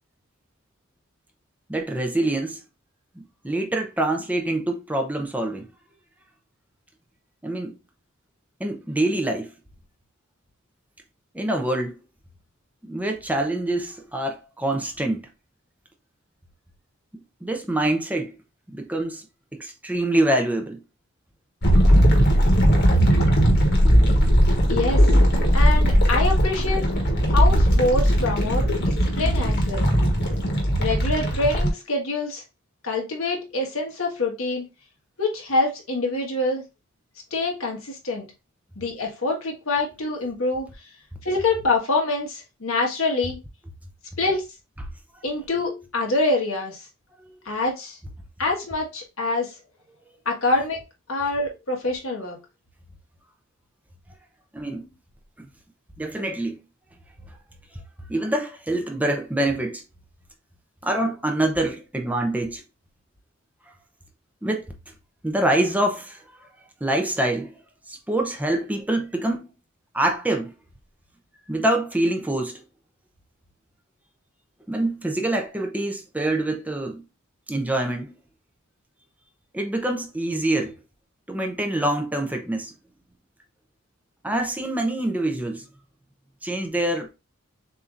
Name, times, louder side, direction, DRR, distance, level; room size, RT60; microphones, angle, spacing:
voice 1, 1.7-2.6 3.2-5.7 7.4-7.8 8.6-9.5 11.3-12.0 12.8-15.3 17.1-18.3 18.7-19.2 19.5-20.8 27.3-27.4 47.2-47.4 54.5-54.9 56.0-56.6 57.3-57.4 58.1-59.8 60.8-62.6 64.4-64.7 65.2-66.5 66.8-67.6 67.9-69.5 69.9-70.5 71.5-72.6 74.7-77.0 77.5-78.1 79.5-80.7 81.3-82.7 84.2-85.6 86.4-87.1, right 1 dB, 10° right, 0.7 m, -25 dB
sound 1, 21.6-31.7, equal, 55° left, 1.4 m, -18 dB
voice 2, 24.7-25.0 25.5-26.9 27.3-29.9 30.8-32.4 32.8-34.7 35.2-36.6 37.3-38.3 38.8-40.9 41.2-43.4 44.2-44.4 45.2-46.8 47.4-48.0 48.4-49.5 50.2-50.8 51.1-52.4, left 2 dB, 90° left, 1.6 m, -25 dB
6.8 x 2.9 x 2.5 m
head